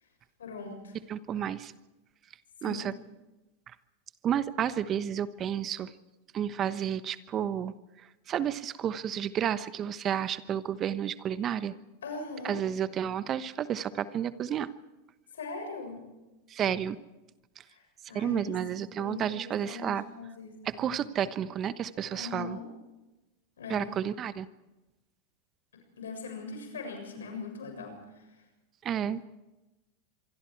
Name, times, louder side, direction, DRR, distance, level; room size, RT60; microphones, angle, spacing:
voice 1, 0.4-0.9 2.6-2.9 12.0-12.6 15.3-16.0 17.7-17.8 18.1-18.6 19.0-21.1 22.1-22.7 23.6-23.9 26.0-28.3, left 4 dB, 85° left, 4 dB, 7.0 m, -41 dB
voice 2, 1.1-1.7 2.6-2.9 4.2-5.9 6.3-7.7 8.3-11.7 12.4-14.7 16.5-17.0 18.1-20.0 20.6-22.6 23.7-24.5 28.8-29.2, right 9 dB, 35° right, 14 dB, 1.1 m, -31 dB
25.5 x 24.0 x 4.7 m, 1.1 s
hypercardioid pair, 105°, 0 cm